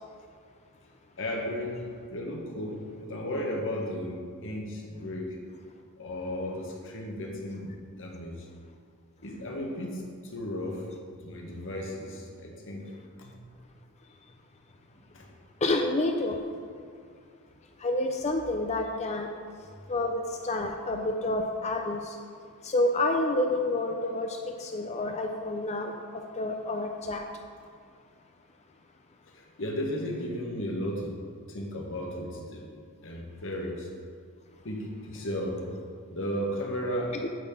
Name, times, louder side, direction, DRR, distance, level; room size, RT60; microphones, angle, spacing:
voice 1, 1.2-1.8 2.1-5.4 6.0-8.5 9.2-10.0 10.3-12.8 13.2-13.4 14.9-15.3 29.3-31.2 31.5-32.7 33.0-33.9 34.6-35.7 36.1-37.2, equal, 60° left, 0 dB, 1.5 m, -34 dB
voice 2, 15.6-16.4 17.8-19.3 19.9-22.2 22.6-25.9 26.4-27.3, left 2 dB, 30° left, 3 dB, 0.5 m, -28 dB
9.2 x 4.3 x 7.1 m, 2.1 s
head